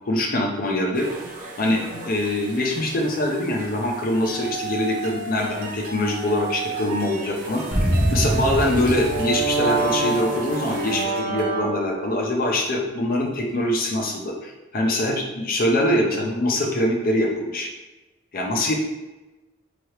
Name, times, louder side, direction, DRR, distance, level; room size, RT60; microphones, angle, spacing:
voice 1, 0.1-1.1 1.6-7.6 8.1-17.7 18.3-18.7, left 1 dB, 45° left, 0 dB, 0.6 m, -23 dB
sound 1, 0.9-11.1, right 2 dB, 45° right, 0.6 m, -41 dB
sound 2, 4.2-11.6, right 4 dB, 80° right, 0.9 m, -34 dB
sound 3, 7.7-12.1, right 2 dB, 5° right, 0.8 m, -24 dB
3.7 x 2.9 x 3.2 m, 1.1 s
head